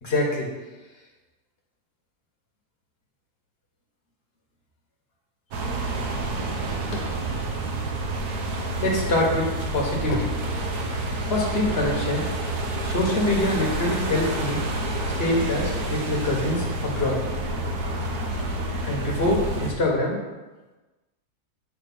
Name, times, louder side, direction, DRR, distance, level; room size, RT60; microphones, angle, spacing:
voice 1, 0.0-0.5 8.8-10.3 11.3-12.2 12.8-14.6 15.0-17.2 18.8-20.2, left 1 dB, 40° left, -1 dB, 1.4 m, -25 dB
sound 1, 5.5-19.7, right 1 dB, 75° right, 1.3 m, -28 dB
sound 2, 6.9-8.6 9.1-11.3, left 3 dB, 90° left, 1.5 m, -36 dB
7.2 x 3.1 x 5.9 m, 1.2 s
omnidirectional pair, 1.7 m